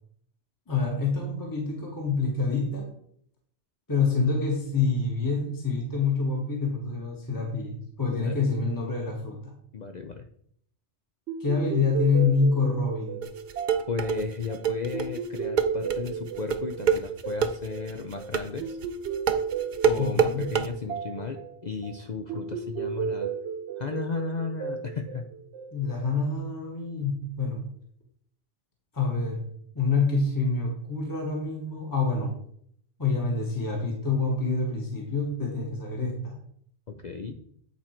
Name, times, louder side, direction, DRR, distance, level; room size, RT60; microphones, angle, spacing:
voice 1, 0.7-2.9 3.9-9.5 11.4-13.2 20.0-20.5 25.7-27.7 28.9-29.5 29.7-32.3 33.0-36.4, left 4 dB, 20° left, 0 dB, 1.2 m, -27 dB
voice 2, 9.7-10.3 13.9-18.8 19.8-23.3 23.8-25.3 36.9-37.4, left 4 dB, 50° left, 5 dB, 0.6 m, -34 dB
sound 1, 11.3-26.0, right 6 dB, 75° right, 0.9 m, -34 dB
sound 2, 13.2-20.7, right 6 dB, 50° right, 0.6 m, -26 dB
8.6 x 4.3 x 4.4 m, 0.66 s
omnidirectional pair, 1.2 m